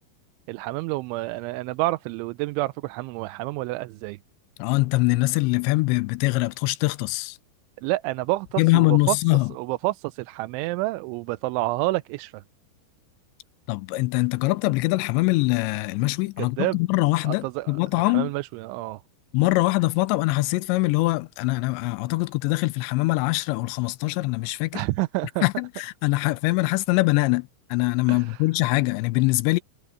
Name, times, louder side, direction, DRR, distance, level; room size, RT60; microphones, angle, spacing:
voice 1, 0.5-4.2 7.8-9.2 9.5-12.4 16.4-16.8 17.3-17.8 18.0-19.0 24.7-25.4 28.1-28.4, right 20 dB, 85° right, 3.0 m, -28 dB
voice 2, 4.6-7.4 8.6-9.5 13.7-18.3 19.3-24.8 25.4-29.6, left 22 dB, 80° left, 2.7 m, -23 dB
omnidirectional pair, 5.3 m